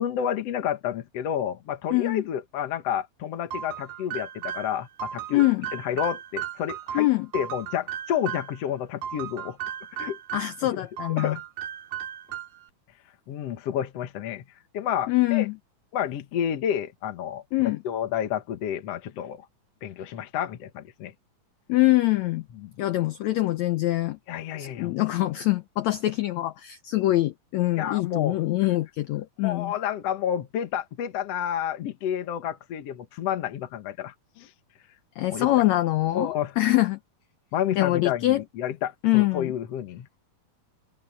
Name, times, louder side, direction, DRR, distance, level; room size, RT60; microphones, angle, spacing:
voice 1, 0.0-5.4 5.7-7.1 7.3-9.6 10.0-10.2 10.7-10.8 11.2-11.4 13.3-14.4 14.7-15.5 15.9-17.4 17.8-19.5 19.8-21.1 22.6-22.7 24.3-25.0 27.8-28.4 29.4-34.5 35.3-35.5 36.1-36.5 37.5-40.2, left 9 dB, 60° left, 1.8 m, -30 dB
voice 2, 1.9-2.2 5.3-5.7 6.9-7.3 10.3-11.4 15.1-15.5 17.5-17.8 21.7-22.4 22.8-24.2 24.6-29.7 35.2-37.0 37.8-38.4 39.0-39.5, left 17 dB, 85° left, 1.5 m, -24 dB
sound 1, 3.5-8.6 9.0-10.6 11.0-12.7, right 10 dB, 75° right, 4.1 m, -36 dB
omnidirectional pair, 4.1 m